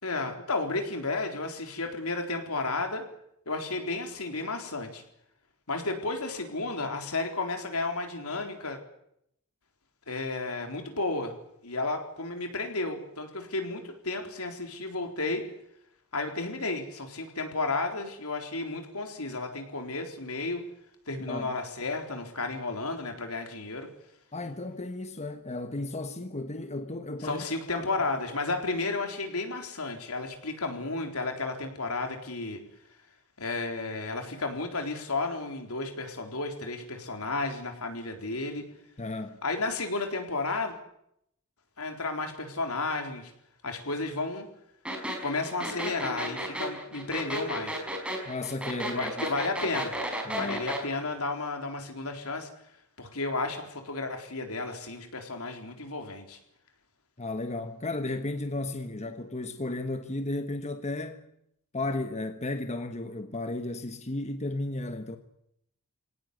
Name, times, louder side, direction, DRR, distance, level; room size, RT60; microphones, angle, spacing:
voice 1, 0.0-3.1 3.5-5.0 5.7-8.8 10.1-11.4 11.6-15.5 16.1-20.7 21.1-23.9 27.2-32.6 33.4-38.6 39.4-40.8 41.8-43.3 43.6-44.5 45.2-47.8 48.9-50.0 50.3-52.5 53.0-56.4, left 3 dB, 75° left, 4.0 m, -32 dB
voice 2, 24.3-27.9 39.0-39.4 48.2-49.3 50.3-50.6 57.2-61.3 61.7-65.2, left 2 dB, 30° left, 1.2 m, -34 dB
sound 1, 44.9-50.8, right 1 dB, 5° right, 4.9 m, -33 dB
23.5 x 18.0 x 9.7 m
head